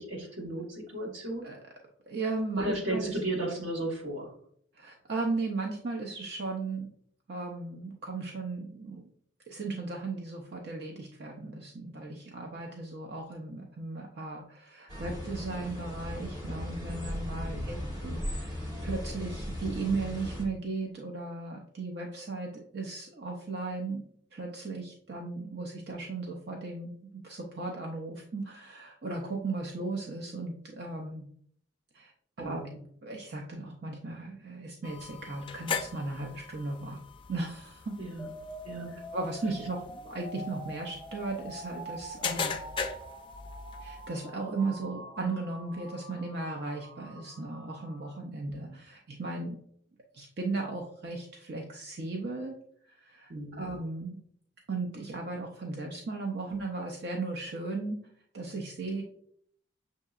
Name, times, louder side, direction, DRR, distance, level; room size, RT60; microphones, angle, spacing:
voice 1, 0.0-1.5 2.6-4.3 17.4-17.8 32.4-32.8 38.0-38.3 38.6-39.1 48.5-48.8 53.3-53.7, right 1 dB, 90° right, -3 dB, 1.3 m, -35 dB
voice 2, 2.1-3.1 4.7-6.9 7.3-9.1 9.5-24.0 24.3-31.2 31.9-32.1 32.4-32.6 33.0-37.0 37.3-38.0 39.1-42.5 43.8-49.6 50.1-52.6 52.9-54.2 54.7-58.0 58.3-59.0, right 3 dB, 60° right, 0 dB, 0.5 m, -36 dB
sound 1, 14.9-20.4, left 1 dB, 20° right, 1.3 m, -37 dB
sound 2, 34.8-44.1, left 5 dB, 25° left, 0.3 m, -40 dB
sound 3, 38.2-48.2, equal, ahead, 0.8 m, -46 dB
6.5 x 2.7 x 2.4 m, 0.64 s
head